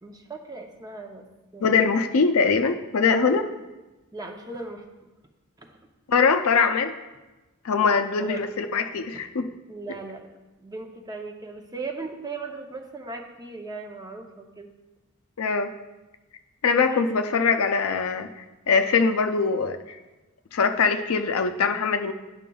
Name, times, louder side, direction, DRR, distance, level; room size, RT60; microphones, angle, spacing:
voice 1, 0.0-1.3 1.5-1.9 3.2-3.4 4.1-4.8 5.6-5.8 8.2-8.5 9.1-9.2 9.7-10.3 10.6-14.7 16.8-17.0, right 3 dB, 20° right, 3 dB, 0.6 m, -37 dB
voice 2, 1.6-3.4 6.1-6.9 7.6-9.5 15.4-15.7 16.6-20.0 20.5-22.1, left 5 dB, 75° left, 7 dB, 0.5 m, -22 dB
10.5 x 5.8 x 2.3 m, 1.1 s
head